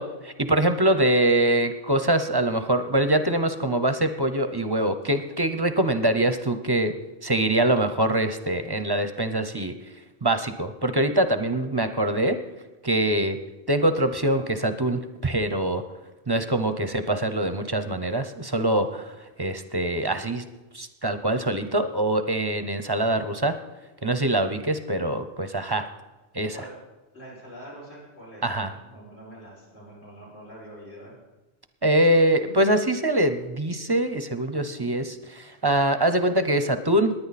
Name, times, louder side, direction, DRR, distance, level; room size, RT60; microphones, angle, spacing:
voice 1, 0.0-6.9 7.2-9.7 10.2-12.4 12.8-13.4 13.7-15.8 16.3-20.5 20.7-23.6 24.0-25.9 26.3-26.6 28.4-28.7 31.8-37.1, right 1 dB, 25° right, 9 dB, 0.6 m, -24 dB
voice 2, 27.1-28.4 28.8-31.1 34.5-34.9, right 1 dB, 75° left, -6 dB, 6.4 m, -44 dB
18.5 x 10.0 x 4.2 m, 1.1 s
omnidirectional pair, 1.1 m